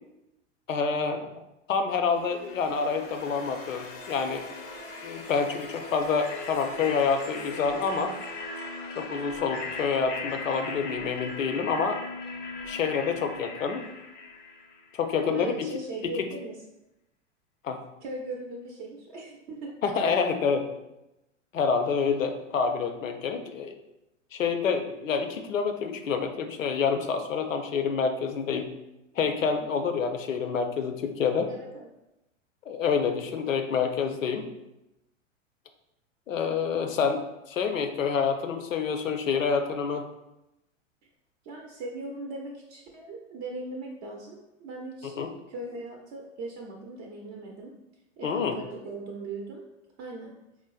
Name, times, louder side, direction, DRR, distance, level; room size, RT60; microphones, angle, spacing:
voice 1, 0.7-1.3 1.7-4.4 5.0-8.2 9.0-12.0 12.6-13.9 14.9-15.7 16.0-16.3 17.6-17.8 19.8-20.7 21.5-23.7 24.3-28.7 29.2-31.5 32.7-34.5 36.3-40.1 45.2-45.3 48.2-48.6, left 5 dB, 90° left, 7 dB, 0.5 m, -27 dB
sound 1, 2.2-15.1, left 3 dB, 25° left, 0.4 m, -39 dB
voice 2, 15.2-16.6 18.0-20.1 29.6-29.7 31.5-31.9 41.4-45.2 45.5-47.7 48.2-49.6 50.0-50.3, right 2 dB, 35° right, 0 dB, 0.5 m, -39 dB
4.3 x 2.0 x 2.3 m, 0.92 s
hypercardioid pair, 100°, 38 cm